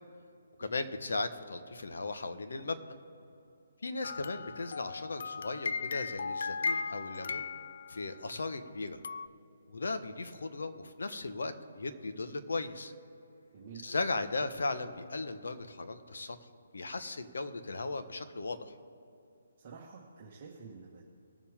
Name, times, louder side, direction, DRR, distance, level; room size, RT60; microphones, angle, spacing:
voice 1, 0.6-3.0 3.8-7.5 7.9-9.0 9.7-12.9 13.8-16.4 16.7-18.7, left 3 dB, 80° left, 9 dB, 1.2 m, -37 dB
sound 1, 4.0-8.2 9.0-9.3, left 4 dB, 60° left, 0.4 m, -37 dB
voice 2, 13.5-13.9 19.6-21.1, right 5 dB, 30° right, -3 dB, 1.5 m, -49 dB
21.0 x 7.3 x 3.6 m, 2.7 s
hypercardioid pair, 165°, 0 cm